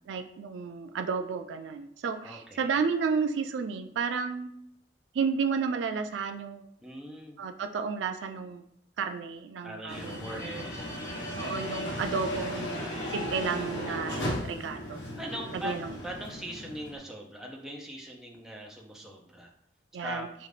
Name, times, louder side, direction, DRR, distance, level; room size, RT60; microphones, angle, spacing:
voice 1, 0.1-4.6 5.1-6.7 7.4-8.6 9.0-10.7 11.4-15.0 15.5-15.9 19.9-20.3, right 5 dB, 90° right, 7 dB, 0.4 m, -32 dB
voice 2, 2.2-2.8 6.8-7.4 9.6-11.0 15.2-15.8 16.0-19.5 20.0-20.3, equal, ahead, -1 dB, 0.6 m, -41 dB
sound 1, 9.9-17.0, equal, 75° left, 1.1 m, -36 dB
5.0 x 2.4 x 3.2 m, 0.70 s
head